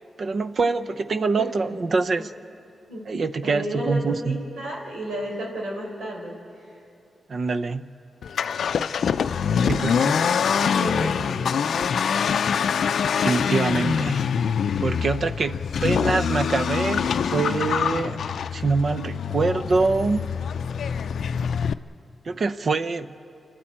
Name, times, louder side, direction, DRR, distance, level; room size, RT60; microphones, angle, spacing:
voice 1, 0.2-2.3 3.1-4.4 7.3-7.9 9.6-10.2 13.1-14.2 14.8-18.2 18.5-20.3 22.2-23.1, right 4 dB, 55° right, 10 dB, 0.7 m, -25 dB
voice 2, 1.4-1.8 2.9-3.1 3.4-6.8 9.4-12.0, right 1 dB, 85° right, -2 dB, 4.6 m, -33 dB
Accelerating revving vroom, 8.2-21.7, left 7 dB, 80° left, 0.4 m, -24 dB
29.0 x 12.0 x 8.7 m, 2.5 s
cardioid pair, 70°, 0 cm